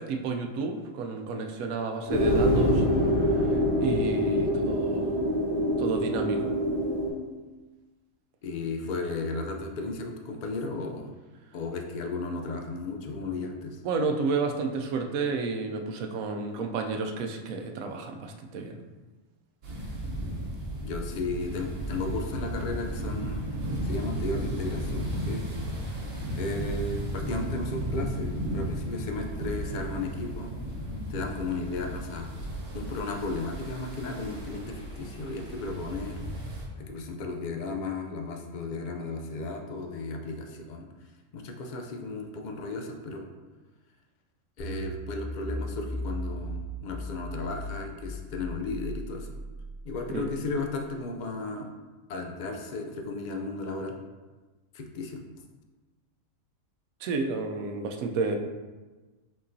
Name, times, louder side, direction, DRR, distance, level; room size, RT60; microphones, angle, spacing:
voice 1, 0.0-5.2 5.8-6.5 13.8-18.8 50.1-50.3 57.0-58.4, right 4 dB, 85° right, 4 dB, 1.0 m, -31 dB
sound 1, 2.1-7.1, equal, 25° right, 1.1 m, -25 dB
voice 2, 8.4-11.1 11.5-13.8 20.5-23.4 23.8-25.5 26.3-30.5 31.1-32.3 32.7-36.2 36.8-40.9 41.3-43.3 44.6-49.3 49.8-51.7 52.1-54.0 54.7-55.2, left 3 dB, 75° left, 2 dB, 0.4 m, -34 dB
sound 2, 19.6-36.7, equal, 65° right, 1.3 m, -34 dB
sound 3, 44.6-50.8, equal, 35° left, 1.1 m, -37 dB
5.3 x 3.8 x 2.6 m, 1.2 s
omnidirectional pair, 1.4 m